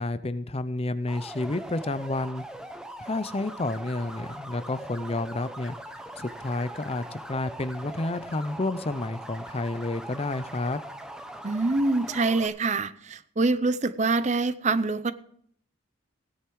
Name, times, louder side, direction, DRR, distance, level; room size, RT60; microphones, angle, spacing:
voice 1, 0.0-2.4 3.0-5.8 6.2-10.8, left 2 dB, 30° left, 14 dB, 0.6 m, -30 dB
sound 1, 1.1-12.5, right 1 dB, 5° right, 1.1 m, -41 dB
voice 2, 11.4-15.1, right 3 dB, 35° right, 14 dB, 0.6 m, -25 dB
17.0 x 10.0 x 4.7 m, 0.63 s
head